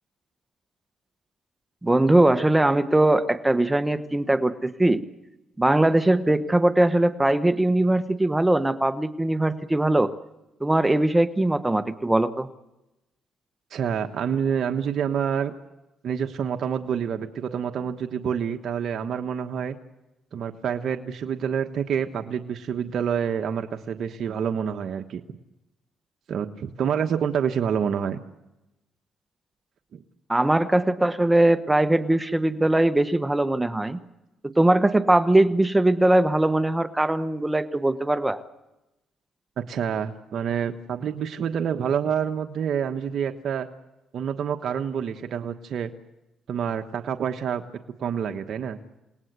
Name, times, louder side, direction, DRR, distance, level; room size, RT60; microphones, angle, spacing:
voice 1, 1.8-5.0 5.6-10.1 10.6-12.5 30.3-34.0 34.4-38.4, right 1 dB, 10° right, 11 dB, 1.1 m, -21 dB
voice 2, 13.7-15.5 16.0-19.7 20.3-25.2 26.3-28.2 29.9-30.0 39.6-43.7 44.1-45.9 46.5-47.6 48.0-48.8, right 7 dB, 65° right, 5 dB, 1.2 m, -27 dB
29.0 x 19.0 x 8.2 m, 0.97 s
cardioid pair, 90°, 0 cm